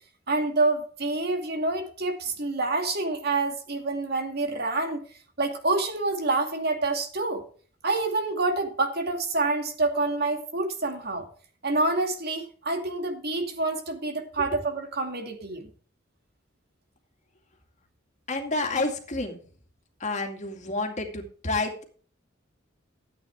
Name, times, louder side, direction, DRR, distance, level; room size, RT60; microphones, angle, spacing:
voice 1, 0.3-5.0 5.4-7.4 7.8-11.3 11.6-15.7, right 3 dB, 55° right, 5 dB, 2.4 m, -27 dB
voice 2, 18.3-19.4 20.0-21.8, left 2 dB, 40° left, 3 dB, 2.3 m, -29 dB
13.5 x 9.0 x 3.5 m, 0.43 s
head